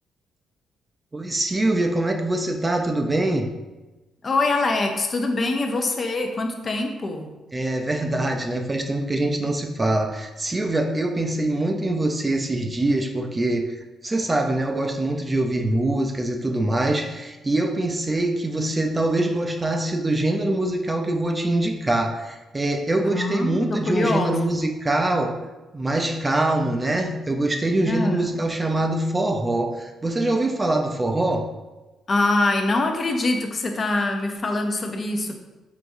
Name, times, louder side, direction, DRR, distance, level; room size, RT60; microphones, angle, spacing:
voice 1, 1.1-3.5 7.5-25.4 25.7-31.5, right 2 dB, 20° right, 4 dB, 0.4 m, -24 dB
voice 2, 4.2-7.3 23.0-24.6 27.9-28.4 32.1-35.4, left 2 dB, 40° left, 4 dB, 0.6 m, -24 dB
4.7 x 3.5 x 2.6 m, 1.1 s
cardioid pair, 100°, 0 cm